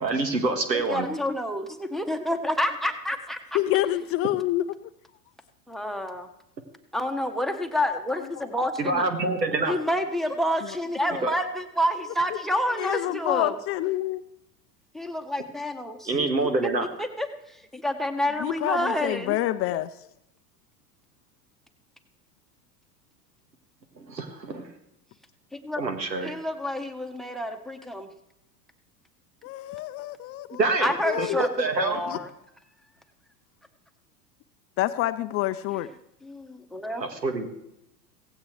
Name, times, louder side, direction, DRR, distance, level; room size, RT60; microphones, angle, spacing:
voice 1, 0.0-1.1 8.8-9.7 11.2-11.3 16.1-16.9 24.0-24.7 25.8-26.3 30.6-32.0 36.9-37.5, right 3 dB, 90° right, 6 dB, 2.1 m, -26 dB
voice 2, 0.7-3.6 5.7-6.3 6.9-9.2 9.7-13.6 14.9-16.3 17.0-19.4 25.5-25.8 26.2-28.1 30.8-32.3 36.2-37.0, equal, ahead, 8 dB, 1.3 m, -29 dB
voice 3, 3.5-4.6 12.8-14.2 18.4-19.9 29.4-30.6 31.0-31.4 32.1-32.2 34.8-35.9, left 15 dB, 30° left, 11 dB, 0.5 m, -27 dB
17.0 x 15.5 x 3.4 m, 0.82 s
hypercardioid pair, 90°, 49 cm